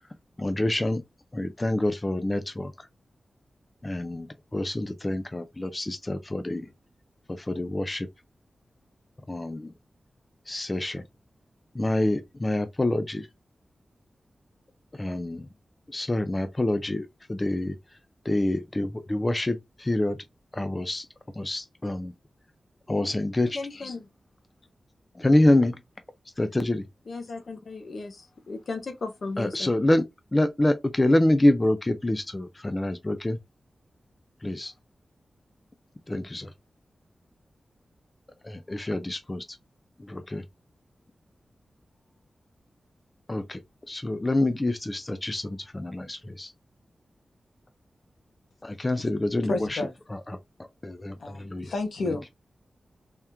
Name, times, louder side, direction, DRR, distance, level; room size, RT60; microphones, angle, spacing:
voice 1, 0.4-1.0 1.3-2.9 3.8-6.7 7.3-8.1 9.3-9.7 10.5-11.0 11.7-13.3 14.9-15.5 15.9-17.8 18.2-20.2 20.5-21.1 21.3-22.1 22.9-23.6 25.1-25.8 26.4-26.9 29.4-30.0 30.3-33.4 34.4-34.7 36.1-36.5 38.4-39.4 40.0-40.4 43.3-43.6 43.9-46.5 48.6-50.4 50.8-51.7 52.1-52.2, left 1 dB, 20° left, 0.4 m, -26 dB
voice 2, 23.5-24.1 27.1-29.7, left 3 dB, 55° left, 0.9 m, -36 dB
voice 3, 49.5-49.9 51.2-52.3, left 3 dB, 80° left, 1.2 m, -30 dB
3.5 x 2.9 x 3.4 m
wide cardioid pair, 140°, 0 cm